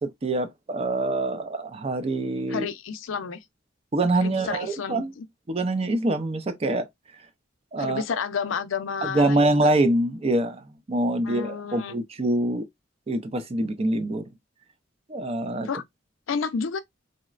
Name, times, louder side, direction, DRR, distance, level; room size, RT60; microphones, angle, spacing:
voice 1, 0.0-2.7 3.9-5.1 5.5-6.9 7.7-8.0 9.0-12.7 13.1-14.2 15.1-15.7, right 2 dB, 30° right, 0.4 m, -25 dB
voice 2, 2.5-3.4 4.2-5.3 7.8-9.7 11.2-12.0 15.6-15.8 16.3-16.8, left 6 dB, 85° left, 0.5 m, -31 dB
3.8 x 2.1 x 2.3 m
head